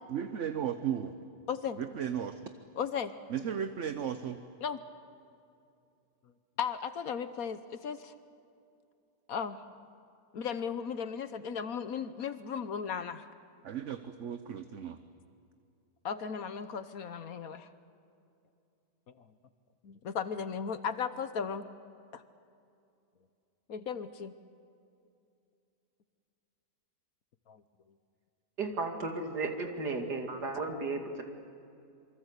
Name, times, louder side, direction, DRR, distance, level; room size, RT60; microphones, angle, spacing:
voice 1, 0.1-1.1 1.8-2.4 3.3-4.4 13.6-15.0, right 9 dB, 50° right, 9 dB, 1.1 m, -35 dB
voice 2, 1.5-1.8 2.7-3.1 4.6-4.8 6.6-8.1 9.3-9.6 10.3-13.3 16.0-17.7 19.8-21.7 22.1-22.2 23.7-24.4 27.5-27.6, left 7 dB, 60° left, 12 dB, 1.3 m, -36 dB
voice 3, 28.6-31.2, right 3 dB, 70° right, 4 dB, 3.0 m, -34 dB
27.0 x 24.0 x 8.2 m, 2.6 s
omnidirectional pair, 1.8 m